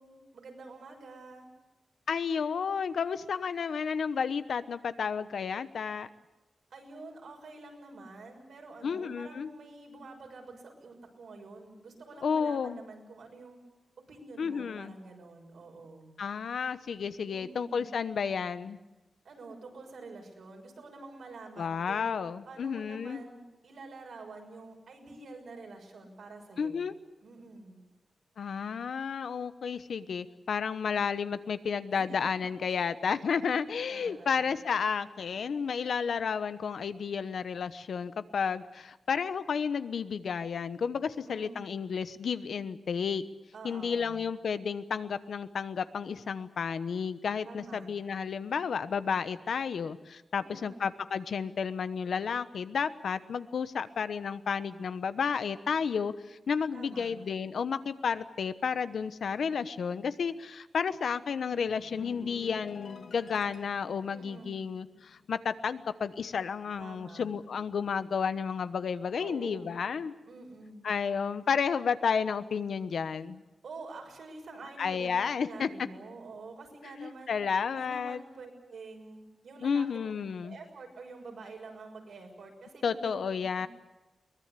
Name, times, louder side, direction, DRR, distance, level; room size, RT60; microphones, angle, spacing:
voice 1, 0.0-1.5 6.7-13.6 14.0-16.1 17.3-17.9 19.2-22.1 22.5-26.8 27.2-27.8 31.9-32.3 32.7-32.9 33.9-34.5 41.1-41.7 43.5-44.3 47.4-47.9 50.4-50.8 56.7-57.2 64.1-64.6 66.8-67.3 69.2-69.7 70.3-70.9 73.6-77.4 77.6-79.9 80.4-83.2 83.6-83.7, right 3 dB, 85° right, 1 dB, 6.3 m, -48 dB
voice 2, 2.1-6.1 8.8-9.5 12.2-12.8 14.4-15.0 16.2-18.8 21.6-23.2 26.6-26.9 28.4-43.2 43.6-70.1 70.8-73.4 74.8-75.7 77.0-78.2 79.6-80.6 82.8-83.7, left 6 dB, 85° left, 12 dB, 1.0 m, -32 dB
sound 1, 61.4-66.0 66.3-66.6, left 5 dB, 70° left, 2.0 m, -50 dB
23.0 x 20.5 x 8.4 m, 1.1 s
wide cardioid pair, 165°, 0 cm